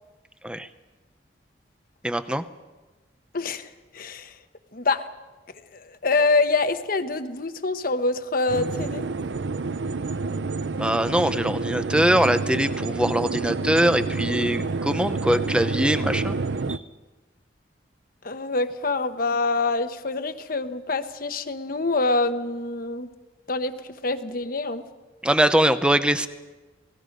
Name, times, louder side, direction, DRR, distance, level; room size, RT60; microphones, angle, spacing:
voice 1, 2.0-2.4 10.8-16.3 16.7-16.8 25.2-26.3, right 1 dB, 5° right, 11 dB, 0.7 m, -22 dB
voice 2, 3.3-4.3 4.7-5.1 5.7-9.0 18.2-23.1 23.5-23.7 24.0-24.9, left 3 dB, 50° left, 9 dB, 1.1 m, -25 dB
sound 1, 8.5-16.8, right 3 dB, 70° right, 0.6 m, -28 dB
28.0 x 19.0 x 5.3 m, 1.2 s
head